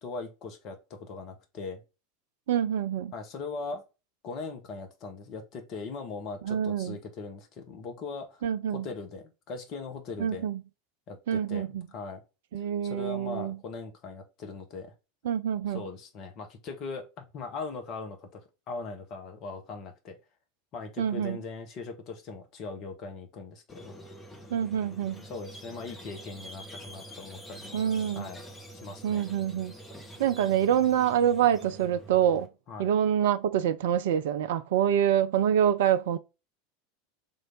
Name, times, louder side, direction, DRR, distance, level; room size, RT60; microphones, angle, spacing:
voice 1, 0.0-1.8 3.1-3.8 4.2-8.4 8.7-10.5 11.1-11.6 11.9-12.2 12.6-14.9 15.7-20.2 20.7-23.9 25.3-27.8 28.1-28.4 28.7-29.3 32.7-32.9, left 4 dB, 40° left, 1.0 m, -40 dB
voice 2, 2.5-3.1 6.4-7.0 8.4-8.9 10.2-10.6 11.3-11.8 12.5-13.6 15.2-15.9 21.0-21.4 24.5-25.2 27.7-28.3 29.0-29.7 30.2-32.5 32.8-36.2, right 9 dB, 60° right, 0.3 m, -26 dB
Squeak, 23.7-32.5, right 1 dB, 15° left, 1.0 m, -46 dB
3.7 x 3.2 x 3.7 m
figure-of-eight pair, 80°, 0 cm